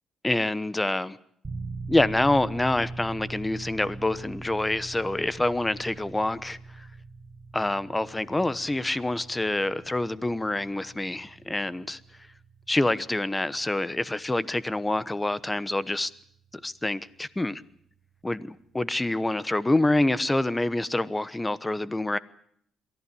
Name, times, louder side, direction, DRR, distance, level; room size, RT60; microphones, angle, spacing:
voice 1, 0.2-1.2 1.9-6.9 7.5-12.0 12.7-16.1 16.6-17.6 18.2-22.2, left 2 dB, 15° left, 1.0 m, -26 dB
sound 1, 1.4-18.2, right 3 dB, 25° right, 3.3 m, -43 dB
23.0 x 14.5 x 9.8 m
cardioid pair, 90°, 0 cm